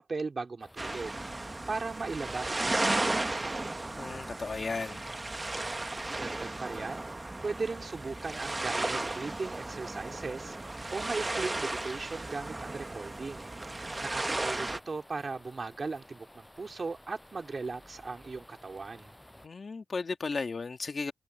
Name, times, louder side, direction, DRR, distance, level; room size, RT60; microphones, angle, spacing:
voice 1, 0.0-3.6 6.2-7.1 7.4-19.1, right 4 dB, 55° right, 4.0 m, -38 dB
sound 1, 0.6-19.5, left 1 dB, 10° left, 6.6 m, -55 dB
sound 2, 0.8-14.8, right 2 dB, 30° right, 1.0 m, -35 dB
voice 2, 4.0-5.1 19.4-21.1, left 4 dB, 65° left, 1.7 m, -35 dB
wide cardioid pair, 100°, 0 cm